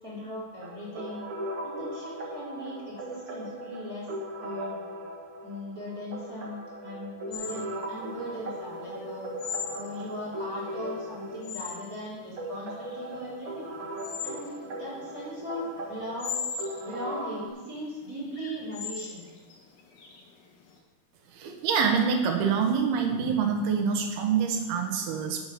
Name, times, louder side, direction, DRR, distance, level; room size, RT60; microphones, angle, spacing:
voice 1, 0.0-1.2 1.6-4.1 4.4-4.8 5.4-9.2 9.7-13.7 14.2-16.3 16.8-19.2, equal, 25° right, -7 dB, 3.1 m, -39 dB
sound 1, 0.6-17.5, right 1 dB, 60° right, 1.4 m, -38 dB
sound 2, 7.3-20.7, left 6 dB, 75° left, 3.5 m, -40 dB
voice 2, 21.3-25.5, right 6 dB, 85° right, 4 dB, 3.1 m, -26 dB
13.0 x 5.6 x 5.9 m, 1.2 s
omnidirectional pair, 4.4 m